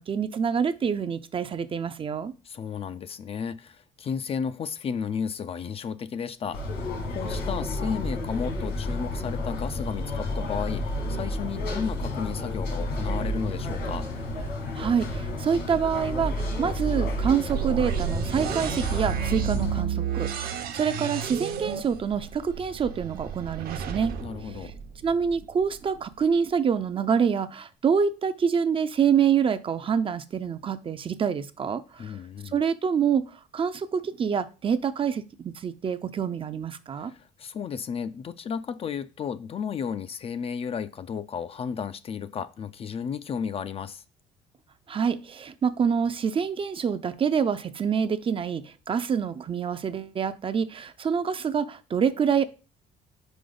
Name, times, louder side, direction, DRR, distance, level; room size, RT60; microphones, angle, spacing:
voice 1, 0.0-2.3 14.7-24.1 25.0-32.2 32.5-33.2 33.5-37.1 44.9-52.5, right 7 dB, 30° right, 0.5 m, -26 dB
voice 2, 2.4-14.1 24.2-24.7 32.0-32.6 36.9-44.0, left 7 dB, 35° left, 0.4 m, -33 dB
sound 1, 6.5-19.8, left 1 dB, 80° left, 2.1 m, -31 dB
sound 2, 17.5-25.4, right 9 dB, 60° right, 0.8 m, -32 dB
5.0 x 4.9 x 3.9 m
cardioid pair, 110°, 17 cm